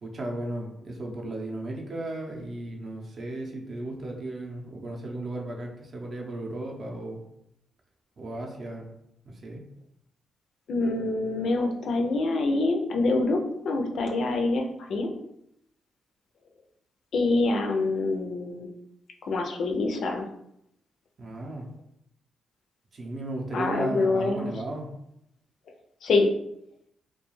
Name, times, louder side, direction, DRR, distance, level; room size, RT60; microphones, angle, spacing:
voice 1, 0.0-7.2 8.2-8.9 9.2-9.6 21.2-21.7 22.9-24.9, right 2 dB, 45° right, 0 dB, 0.6 m, -35 dB
voice 2, 10.7-15.1 17.1-18.7 19.2-20.3 23.5-24.5 26.0-26.3, left 3 dB, 65° left, 3 dB, 0.4 m, -25 dB
2.3 x 2.2 x 3.0 m, 0.78 s
cardioid pair, 115°, 0 cm